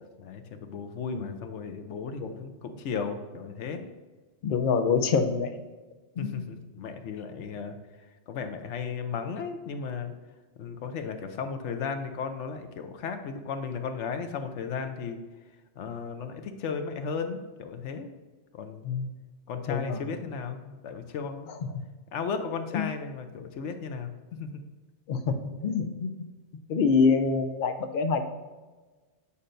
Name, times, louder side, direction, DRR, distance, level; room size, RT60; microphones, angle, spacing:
voice 1, 0.2-3.9 6.2-7.8 8.3-10.1 10.6-15.2 15.8-18.1 18.5-18.8 19.5-21.5 22.1-24.5, left 5 dB, 85° left, 7 dB, 1.0 m, -35 dB
voice 2, 4.4-5.5 6.2-6.3 18.8-19.1 19.7-20.0 22.7-22.8 25.1-26.1 26.7-28.2, left 5 dB, 60° left, 6 dB, 0.7 m, -25 dB
8.3 x 5.5 x 2.6 m, 1.3 s
omnidirectional pair, 1.2 m